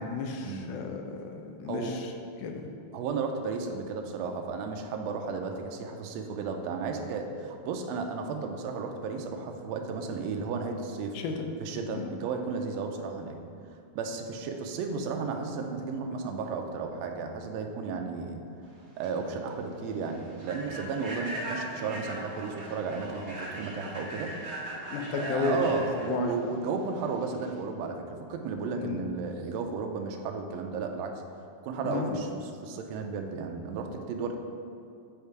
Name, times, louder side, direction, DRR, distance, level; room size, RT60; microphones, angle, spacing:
voice 1, 0.0-2.1 2.4-2.7 11.1-11.5 11.9-12.1 24.9-26.3 28.8-29.0 31.8-32.3, left 4 dB, 85° left, 3 dB, 2.2 m, -33 dB
voice 2, 1.7-2.0 2.9-11.1 11.6-13.4 13.9-18.4 19.0-24.3 25.1-31.2 31.6-34.4, right 5 dB, 80° right, 4 dB, 1.5 m, -34 dB
Human voice / Train, 18.7-27.6, right 1 dB, 30° right, 0.8 m, -40 dB
8.1 x 3.6 x 4.6 m, 2.5 s
omnidirectional pair, 3.6 m